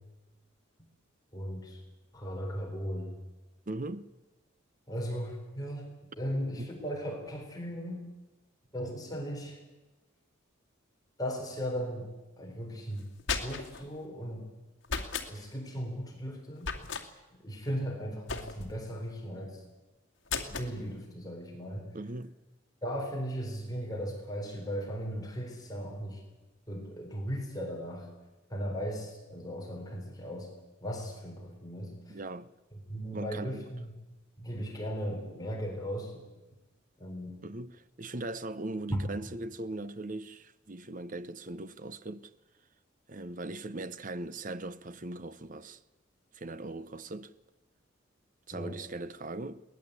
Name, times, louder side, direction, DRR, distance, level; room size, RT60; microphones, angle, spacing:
voice 1, 1.3-1.8 2.1-3.1 4.9-5.9 6.2-8.0 8.7-9.6 11.2-12.1 12.4-13.1 13.4-14.5 15.3-16.9 17.4-19.6 20.3-21.9 22.8-26.2 26.7-28.1 28.5-30.5 30.8-32.2 32.7-33.9 34.4-36.3 37.0-37.4 38.9-39.0 48.5-48.8, equal, 20° left, 4.2 m, -37 dB
voice 2, 3.7-4.1 6.6-6.7 21.9-22.4 32.1-32.5 33.1-33.6 37.4-42.3 43.1-45.8 46.3-47.3 48.5-49.6, right 2 dB, 40° right, 0.8 m, -39 dB
sound 1, 13.0-13.8 14.8-15.3 16.6-17.1 18.3-18.8 20.3-20.7, left 5 dB, 65° left, 2.4 m, -35 dB
23.0 x 18.5 x 8.3 m
head